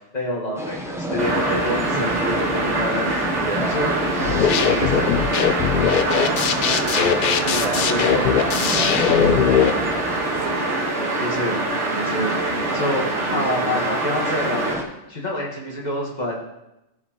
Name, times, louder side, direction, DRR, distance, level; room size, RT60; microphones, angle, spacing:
voice 1, 0.0-3.1 3.7-3.9 4.2-5.1 7.5-8.3 11.1-11.6 11.9-14.7 15.1-16.3, left 1 dB, 35° left, -3 dB, 1.7 m, -27 dB
sound 1, 0.5-14.8, equal, 5° right, 0.6 m, -31 dB
sound 2, 1.2-14.7, right 2 dB, 70° right, 1.8 m, -25 dB
voice 2, 2.0-2.4 3.4-3.8 6.1-10.8, right 3 dB, 40° right, 4 dB, 0.6 m, -33 dB
sound 3, 4.2-9.7, left 8 dB, 65° left, 0.5 m, -20 dB
14.0 x 4.8 x 3.0 m, 0.92 s
omnidirectional pair, 1.3 m